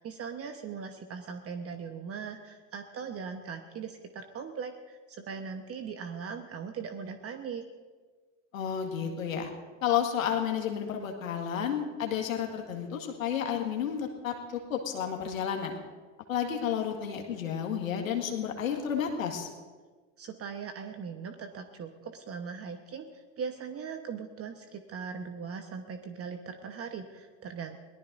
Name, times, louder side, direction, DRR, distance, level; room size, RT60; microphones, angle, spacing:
voice 1, 0.0-7.6 20.2-27.9, right 6 dB, 35° right, 6 dB, 1.2 m, -40 dB
voice 2, 8.5-9.5 9.8-15.8 16.3-19.5, left 8 dB, 90° left, 3 dB, 2.0 m, -31 dB
22.5 x 18.0 x 2.7 m, 1.4 s
hypercardioid pair, 80°, 39 cm